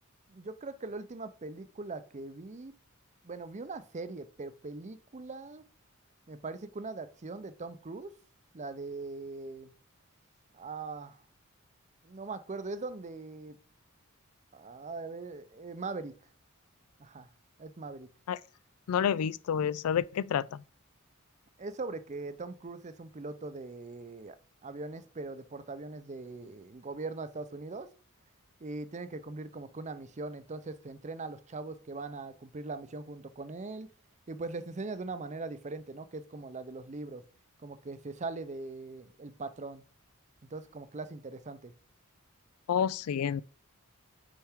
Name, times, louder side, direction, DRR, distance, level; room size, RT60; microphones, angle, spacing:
voice 1, 0.3-2.7 3.2-5.6 6.3-8.1 8.5-9.7 10.5-11.2 12.0-13.6 14.5-16.1 17.0-17.3 17.6-18.1 21.6-24.4 24.6-27.9 28.6-33.9 34.3-37.2 37.6-39.8 40.4-41.7, right 3 dB, 35° right, 0.6 m, -41 dB
voice 2, 18.9-20.6 42.7-43.4, left 8 dB, 80° left, 0.3 m, -29 dB
8.8 x 4.5 x 3.6 m
head